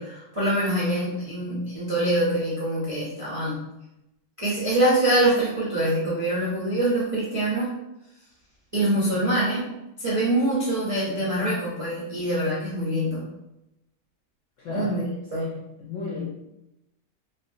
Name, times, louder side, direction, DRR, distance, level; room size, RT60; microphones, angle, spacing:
voice 1, 0.0-3.6 4.4-7.8 8.7-9.7 10.0-13.3 14.7-15.0 15.3-15.5, right 1 dB, 50° right, -9 dB, 0.3 m, -24 dB
voice 2, 14.6-15.0 15.3-16.2, left 5 dB, 75° left, -4 dB, 0.7 m, -35 dB
3.1 x 2.5 x 2.6 m, 0.90 s
omnidirectional pair, 1.8 m